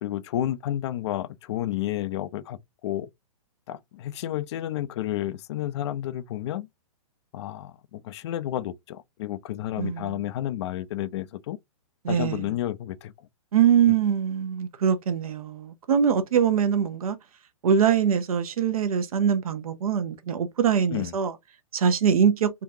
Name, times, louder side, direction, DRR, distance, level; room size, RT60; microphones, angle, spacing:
voice 1, 0.0-2.6 2.8-3.1 3.7-6.7 7.3-11.6 12.1-13.1 20.9-21.1, left 13 dB, 50° left, 0.4 m, -31 dB
voice 2, 9.8-10.2 12.0-12.5 13.5-17.2 17.6-21.4 21.7-22.5, right 8 dB, 75° right, 0.7 m, -23 dB
3.8 x 2.4 x 2.7 m
hypercardioid pair, 135°, 19 cm